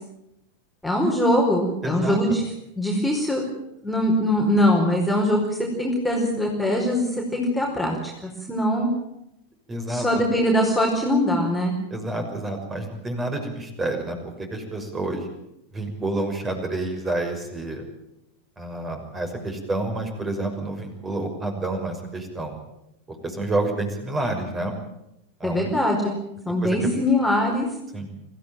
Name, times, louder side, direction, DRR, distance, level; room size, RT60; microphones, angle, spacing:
voice 1, 0.8-2.4 2.8-3.4 3.8-5.5 5.8-8.0 8.2-8.9 9.9-11.8 25.4-26.2 26.4-27.7, left 1 dB, ahead, -2 dB, 4.8 m, -22 dB
voice 2, 1.8-2.2 9.7-10.2 11.9-15.3 15.7-17.8 18.6-22.6 23.2-24.7 25.4-25.7 26.6-26.8 27.9-28.1, right 2 dB, 15° right, 4 dB, 6.0 m, -29 dB
25.0 x 16.0 x 9.2 m, 0.83 s
figure-of-eight pair, 90°, 0 cm